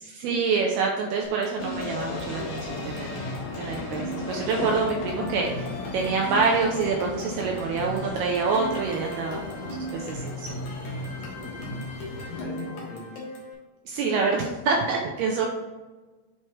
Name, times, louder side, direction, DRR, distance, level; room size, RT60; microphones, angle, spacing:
voice 1, 0.1-3.1 3.6-10.5 13.9-15.5, right 4 dB, 85° right, 0 dB, 2.3 m, -26 dB
sound 1, 1.2-13.5, equal, 60° left, 2.4 m, -38 dB
sound 2, 1.6-12.4, left 3 dB, 75° left, 1.6 m, -36 dB
voice 2, 11.1-13.2, left 4 dB, 90° left, -2 dB, 4.4 m, -40 dB
8.2 x 4.4 x 3.2 m, 1.3 s
omnidirectional pair, 5.3 m